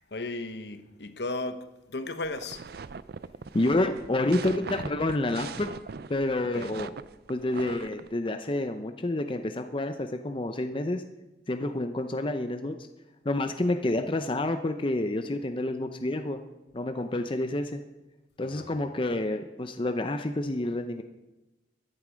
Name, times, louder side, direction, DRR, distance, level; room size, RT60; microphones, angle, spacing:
voice 1, 0.1-2.6 6.5-6.7 13.8-14.0 18.4-18.7, left 2 dB, 65° left, 1.0 m, -35 dB
sound 1, 2.2-8.1, right 5 dB, 60° right, 0.5 m, -41 dB
voice 2, 3.5-5.7 6.1-6.9 7.3-11.0 11.5-12.8 13.2-16.4 16.7-17.8 18.4-21.0, left 2 dB, 30° left, 0.6 m, -29 dB
14.5 x 11.0 x 5.2 m
head